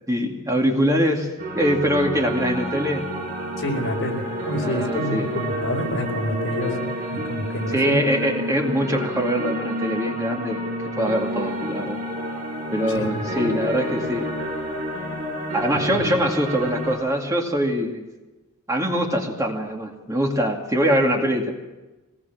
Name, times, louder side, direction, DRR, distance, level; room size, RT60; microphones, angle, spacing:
voice 1, 0.1-1.3 1.5-3.1 4.6-5.3 7.7-10.6 11.0-12.0 12.7-14.3 15.5-18.1 18.7-21.5, equal, 15° right, 0 dB, 2.4 m, -23 dB
sound 1, 1.4-17.0, equal, 35° right, 6.1 m, -29 dB
voice 2, 3.6-8.0 12.9-13.5 15.9-16.2, equal, 60° left, 2 dB, 4.7 m, -28 dB
24.5 x 19.5 x 7.4 m, 1.1 s
head